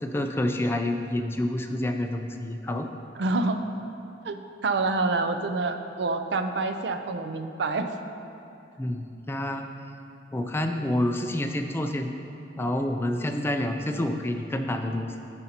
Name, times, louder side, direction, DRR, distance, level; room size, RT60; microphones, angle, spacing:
voice 1, 0.0-2.9 8.8-9.7 10.3-12.1 12.6-15.1, left 1 dB, 15° left, 5 dB, 0.3 m, -28 dB
voice 2, 3.2-3.6 4.2-4.4 4.6-7.9, right 3 dB, 65° right, 7 dB, 0.4 m, -27 dB
12.5 x 5.2 x 2.9 m, 2.7 s
head